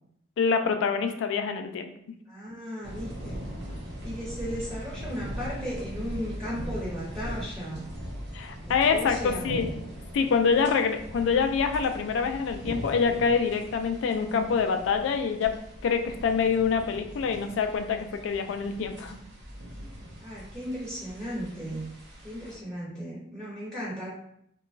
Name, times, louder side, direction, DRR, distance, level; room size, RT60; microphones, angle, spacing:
voice 1, 0.4-1.9 8.3-9.7 10.1-15.5 15.8-19.2, left 5 dB, 70° left, 7 dB, 0.3 m, -26 dB
voice 2, 2.3-3.5 4.0-7.8 8.6-9.5 20.2-21.9 22.2-24.1, equal, 10° right, -8 dB, 0.8 m, -36 dB
sound 1, 2.8-22.6, equal, 65° right, 0.6 m, -40 dB
2.8 x 2.2 x 2.5 m, 0.71 s
head